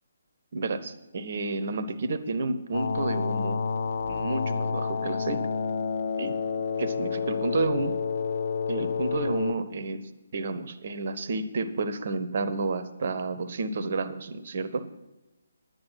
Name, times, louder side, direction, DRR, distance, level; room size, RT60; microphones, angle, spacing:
voice 1, 0.5-3.6 4.1-5.5 6.2-6.3 6.8-8.0 8.7-14.9, right 3 dB, 45° right, 13 dB, 0.9 m, -31 dB
sound 1, 2.7-9.5, left 5 dB, 50° left, 0.5 m, -29 dB
10.5 x 9.8 x 5.7 m, 1.0 s
figure-of-eight pair, 140°, 0 cm